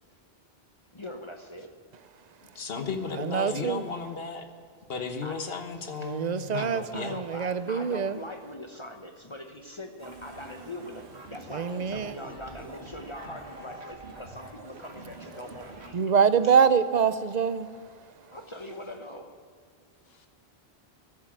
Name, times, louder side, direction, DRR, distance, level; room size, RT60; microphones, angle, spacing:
voice 1, 0.9-1.7 5.2-5.5 6.0-6.2 6.5-16.1 16.4-16.6 18.3-19.4, left 1 dB, 30° left, 1.0 m, -42 dB
voice 2, 2.5-4.5 4.9-7.1, left 5 dB, 65° left, 1.4 m, -34 dB
voice 3, 3.2-3.9 6.0-8.2 11.5-12.1 15.9-17.7, right 6 dB, 50° right, 0.6 m, -25 dB
sound 1, 10.0-15.9, right 2 dB, 90° right, 2.0 m, -45 dB
13.5 x 7.5 x 8.7 m
omnidirectional pair, 1.1 m